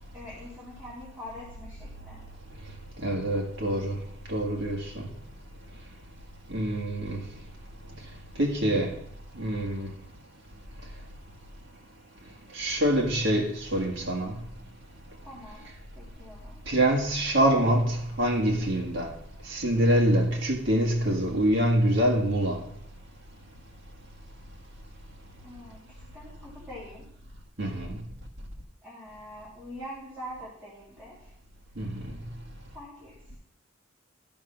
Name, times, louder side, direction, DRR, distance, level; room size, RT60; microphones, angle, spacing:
voice 1, 0.1-2.2 15.2-15.7 15.9-16.6 25.4-25.8 26.1-27.1 28.8-31.3 32.7-33.4, equal, 10° right, 2.5 m, -44 dB
voice 2, 3.0-4.0 4.3-5.1 6.5-7.3 8.4-9.0 9.3-9.9 12.5-14.4 16.7-19.1 19.4-22.7 27.6-28.0 31.8-32.3, right 1 dB, 65° right, 1.9 m, -25 dB
12.5 x 5.3 x 5.9 m
head